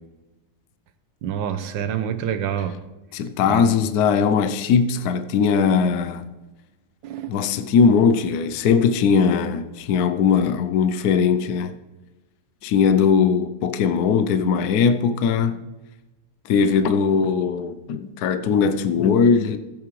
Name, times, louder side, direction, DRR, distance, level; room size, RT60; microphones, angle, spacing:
voice 1, 1.2-2.9 3.4-3.8 7.0-7.4, right 9 dB, 85° right, 1.5 m, -27 dB
voice 2, 3.1-6.2 7.3-11.7 12.6-15.6 16.4-19.6, left 6 dB, 65° left, 1.1 m, -19 dB
15.5 x 8.5 x 3.1 m
omnidirectional pair, 2.0 m